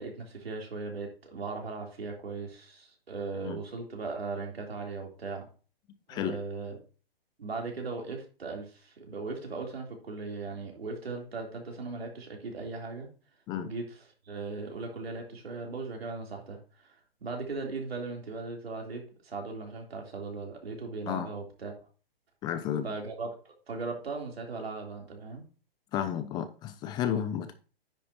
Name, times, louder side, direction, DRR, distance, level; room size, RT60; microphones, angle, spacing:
voice 1, 0.0-5.5 6.1-6.8 7.4-13.1 13.6-16.9 17.2-21.7 22.8-25.4, right 3 dB, 85° right, 3.4 m, -38 dB
voice 2, 22.4-22.9 25.9-27.5, left 9 dB, 15° left, 0.4 m, -32 dB
9.9 x 8.2 x 2.9 m
hypercardioid pair, 130°, 30 cm